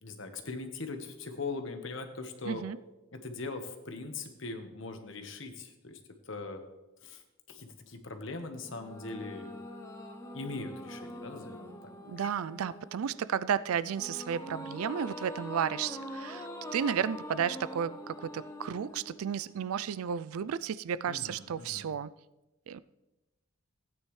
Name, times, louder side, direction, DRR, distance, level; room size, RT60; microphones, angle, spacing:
voice 1, 0.0-2.7 3.1-6.0 6.3-6.6 7.0-7.2 7.5-9.6 10.3-12.3 21.1-21.9, left 3 dB, 60° left, 1.3 m, -41 dB
voice 2, 2.4-2.8 12.1-22.1 22.7-22.8, right 8 dB, 85° right, 0.4 m, -33 dB
sound 1, 8.6-20.0, left 1 dB, 15° left, 0.9 m, -44 dB
16.5 x 9.3 x 3.2 m
head